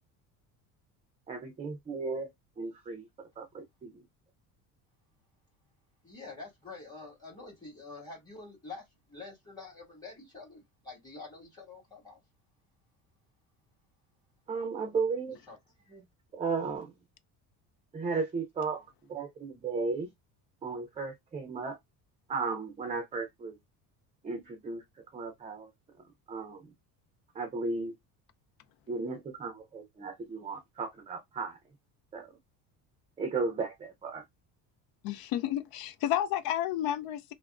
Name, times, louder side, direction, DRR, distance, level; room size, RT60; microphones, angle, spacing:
voice 1, 1.3-2.3 2.6-4.0 14.5-15.4 15.9-16.0 16.3-16.9 17.9-20.1 20.6-21.8 22.3-23.6 24.2-24.8 25.1-25.7 26.3-26.6 27.3-27.9 28.9-31.6 32.1-32.3 33.2-34.2, right 4 dB, 20° right, 0.5 m, -35 dB
voice 2, 6.0-12.2 15.5-15.6, left 3 dB, 10° left, 2.0 m, -47 dB
voice 3, 35.0-37.3, left 11 dB, 70° left, 0.6 m, -31 dB
3.3 x 2.1 x 2.4 m
cardioid pair, 150°, 37 cm